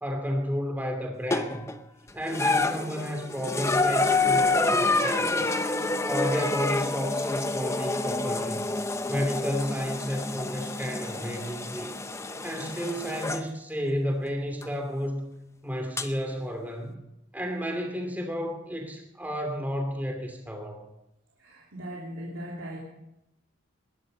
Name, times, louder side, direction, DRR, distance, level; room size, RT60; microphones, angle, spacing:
voice 1, 0.0-1.7 2.1-5.6 6.1-8.7 9.1-12.0 12.4-15.3 15.6-17.0 17.3-20.9, equal, 10° right, 4 dB, 2.7 m, -32 dB
sound 1, 1.3-1.8 2.3-13.5 14.6-14.7 16.0-16.1, left 3 dB, 15° left, 0.7 m, -28 dB
voice 2, 21.4-22.8, equal, 80° right, -2 dB, 3.0 m, -39 dB
21.0 x 12.0 x 5.3 m, 0.86 s
head